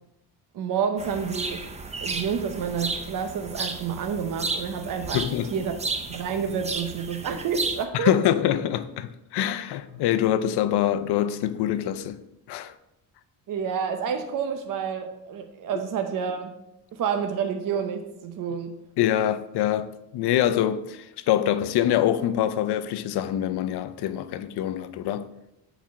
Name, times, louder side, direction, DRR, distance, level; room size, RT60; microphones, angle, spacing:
voice 1, 0.5-1.6 2.0-5.2 5.5-5.8 6.1-8.1 13.5-16.5 16.9-18.7, right 7 dB, 55° right, 0.8 m, -29 dB
sound 1, 1.0-7.8, right 3 dB, 15° right, 0.5 m, -33 dB
voice 2, 5.1-5.5 7.9-12.2 12.5-12.7 19.0-25.3, left 11 dB, 80° left, 0.6 m, -25 dB
7.2 x 4.4 x 5.8 m
cardioid pair, 140°, 39 cm